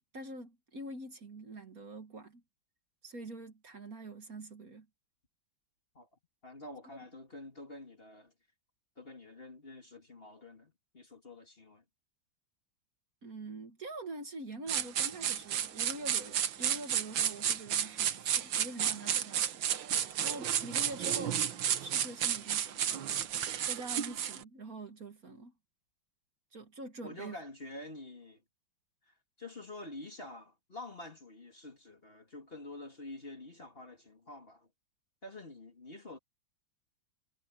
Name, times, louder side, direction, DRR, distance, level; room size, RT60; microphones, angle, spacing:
voice 1, 0.1-2.4 3.0-4.9 13.2-19.5 20.2-21.4 21.8-22.9 23.6-25.5 26.5-27.4, right 2 dB, 50° right, 2.2 m, -45 dB
voice 2, 6.4-8.3 9.0-11.8 27.0-28.4 29.0-34.7 35.2-36.2, left 2 dB, 30° left, 2.4 m, -48 dB
sound 1, 14.7-24.4, right 9 dB, 75° right, 1.8 m, -32 dB
omnidirectional pair, 2.1 m